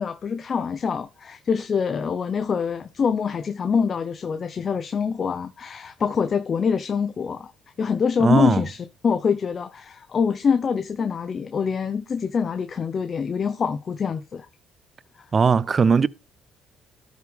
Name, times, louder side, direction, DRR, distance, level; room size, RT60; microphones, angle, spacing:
voice 1, 0.0-7.5 7.8-14.5, left 6 dB, 40° left, 0.9 m, -25 dB
voice 2, 8.2-8.6 15.3-16.1, right 5 dB, 35° right, 0.4 m, -18 dB
13.0 x 6.6 x 3.5 m
cardioid pair, 95°, 0 cm